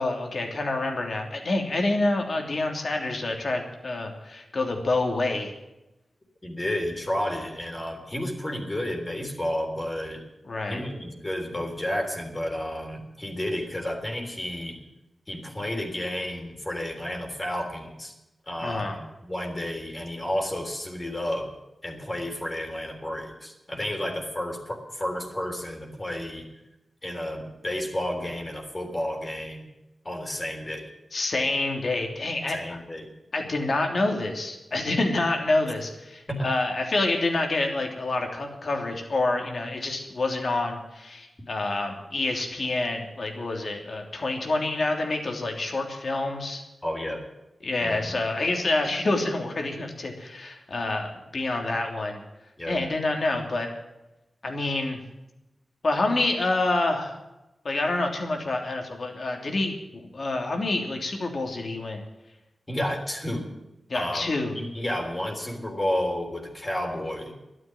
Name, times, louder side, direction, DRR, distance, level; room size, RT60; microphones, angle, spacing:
voice 1, 0.0-5.5 10.5-10.8 18.6-19.0 31.1-32.8 33.3-46.6 47.6-52.2 52.6-53.7 54.4-55.0 55.8-57.2 57.6-62.0 63.9-64.6, left 2 dB, 60° left, 3 dB, 3.1 m, -27 dB
voice 2, 6.4-10.2 10.7-14.8 15.3-18.1 18.5-21.5 21.8-26.5 27.0-29.7 30.1-30.9 32.5-33.1 34.9-35.0 36.3-36.5 46.8-47.3 47.8-48.2 52.6-52.9 62.7-63.5 63.9-67.3, left 1 dB, 25° left, 2 dB, 3.6 m, -31 dB
12.0 x 9.7 x 9.4 m, 0.97 s
wide cardioid pair, 75°, 0 cm